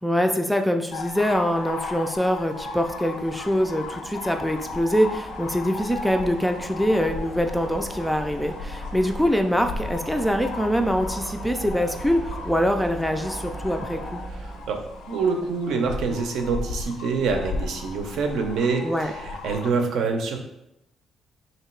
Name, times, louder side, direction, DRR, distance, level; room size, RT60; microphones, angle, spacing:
voice 1, 0.0-14.2 18.8-19.1, equal, ahead, 5 dB, 0.3 m, -24 dB
sound 1, 0.9-19.7, left 3 dB, 85° left, 0.4 m, -36 dB
sound 2, 2.9-15.4, right 3 dB, 30° right, 0.7 m, -41 dB
voice 2, 14.4-14.8 15.1-20.4, right 4 dB, 80° right, 4 dB, 0.6 m, -26 dB
3.0 x 2.8 x 4.4 m, 0.86 s
cardioid pair, 105°, 0 cm